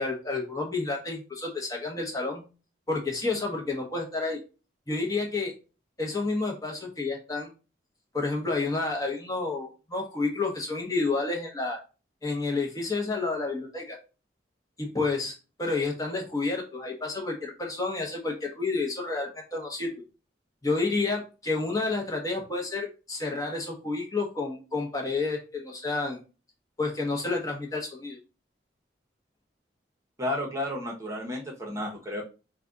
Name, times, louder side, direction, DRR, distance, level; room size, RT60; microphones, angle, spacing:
voice 1, 0.0-2.4 2.9-4.4 4.9-5.5 6.0-7.5 8.1-11.8 12.2-14.0 14.8-15.3 15.6-19.9 20.6-26.2 26.8-28.2, left 3 dB, 20° left, 0 dB, 0.9 m, -30 dB
voice 2, 30.2-32.2, left 1 dB, 15° right, -1 dB, 1.0 m, -32 dB
4.9 x 2.3 x 3.8 m, 0.32 s
head